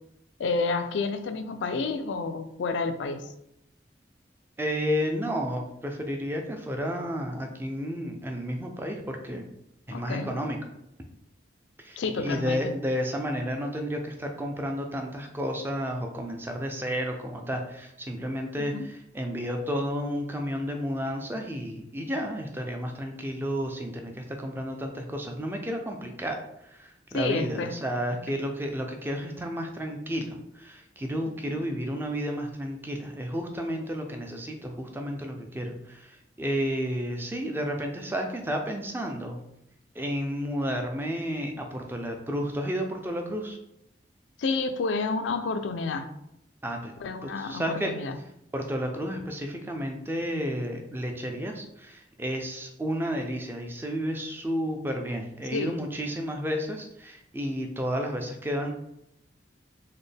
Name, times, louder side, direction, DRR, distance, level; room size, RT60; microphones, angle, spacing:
voice 1, 0.4-3.3 9.9-10.3 12.0-12.7 18.6-18.9 27.1-27.7 28.3-28.4 44.4-46.1 47.0-48.2 55.5-55.7, left 4 dB, 90° left, 9 dB, 0.4 m, -30 dB
voice 2, 4.6-9.5 9.9-10.6 11.8-39.4 39.9-43.6 46.6-46.9 47.2-47.9 48.5-58.7, equal, 10° right, 3 dB, 0.4 m, -32 dB
4.1 x 2.1 x 3.3 m, 0.81 s
head